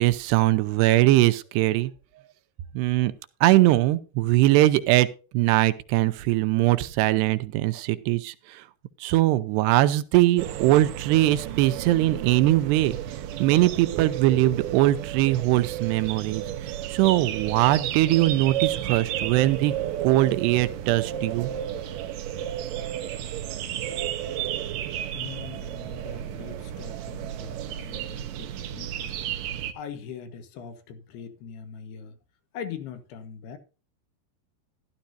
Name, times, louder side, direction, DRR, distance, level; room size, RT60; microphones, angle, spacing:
voice 1, 0.0-1.9 2.7-3.1 3.4-5.1 5.3-8.6 9.0-13.0 13.4-19.7 20.0-21.5, right 16 dB, 90° right, 2.9 m, -21 dB
sound 1, 10.4-29.7, right 11 dB, 70° right, 2.3 m, -32 dB
voice 2, 25.1-29.1 29.7-32.2 32.5-33.6, left 7 dB, 75° left, 3.5 m, -41 dB
13.0 x 12.5 x 2.7 m
omnidirectional pair, 4.7 m